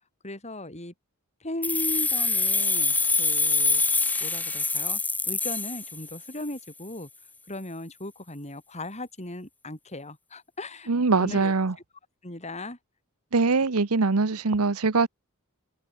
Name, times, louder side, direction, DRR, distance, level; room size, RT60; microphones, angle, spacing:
voice 1, 0.2-0.9 1.4-3.8 4.2-7.1 7.5-10.9 11.2-11.5 12.2-12.8, left 1 dB, 30° left, 6.3 m, -37 dB
sound 1, 1.6-6.4, left 3 dB, 5° left, 0.7 m, -25 dB
voice 2, 10.9-11.7 13.3-15.1, right 4 dB, 80° right, 0.9 m, -22 dB
head